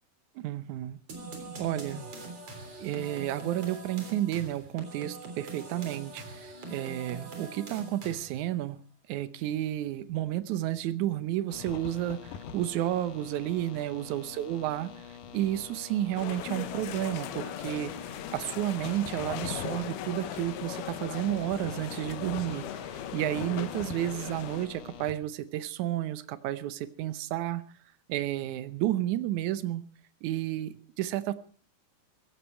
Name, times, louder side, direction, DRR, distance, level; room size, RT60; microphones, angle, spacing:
voice 1, 0.4-1.0 1.6-2.0 2.8-8.8 9.1-22.7 23.1-27.6 28.1-29.8 30.2-31.3, right 13 dB, 70° right, 14 dB, 1.9 m, -31 dB
sound 1, 1.1-8.5, right 2 dB, 40° right, 4.3 m, -43 dB
sound 2, 11.5-25.1, left 8 dB, 70° left, 2.7 m, -45 dB
sound 3, 16.2-24.7, left 10 dB, 85° left, 3.0 m, -39 dB
16.5 x 16.0 x 4.5 m, 0.43 s
omnidirectional pair, 4.3 m